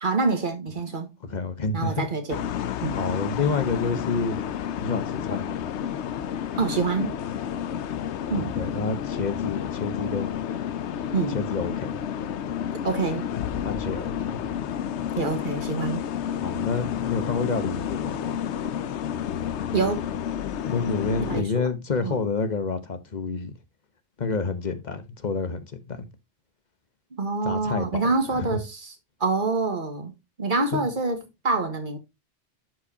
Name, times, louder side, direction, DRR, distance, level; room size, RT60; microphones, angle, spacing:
voice 1, 0.0-1.1 1.7-2.4 2.8-3.0 6.6-7.2 8.3-8.5 11.1-11.4 12.8-13.3 15.2-16.1 19.7-20.0 21.2-21.7 22.0-22.2 27.2-28.9 29.2-30.1 30.4-31.2 31.4-32.0, right 3 dB, 45° right, 1.7 m, -26 dB
voice 2, 1.2-2.1 3.0-4.4 4.8-5.5 8.4-10.4 11.3-12.0 13.6-14.4 16.3-18.4 20.6-23.5 24.2-26.1 27.4-28.0 28.3-28.6 30.7-30.9, left 4 dB, 40° left, 1.1 m, -29 dB
sound 1, 2.3-21.4, left 9 dB, 80° left, 0.9 m, -30 dB
11.5 x 4.8 x 2.8 m
omnidirectional pair, 1.2 m